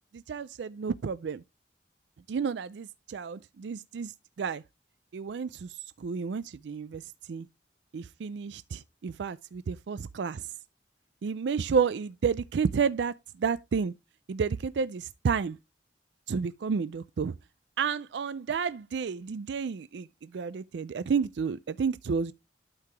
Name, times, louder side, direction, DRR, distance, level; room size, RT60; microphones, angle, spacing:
voice 1, 0.1-1.4 2.3-4.1 4.4-4.6 5.1-5.7 6.0-7.0 7.3-7.5 7.9-10.4 11.2-13.1 13.4-13.9 14.3-15.6 16.3-17.3 17.8-20.1 20.3-22.3, right 6 dB, 80° right, 0.4 m, -31 dB
12.0 x 4.8 x 3.3 m
head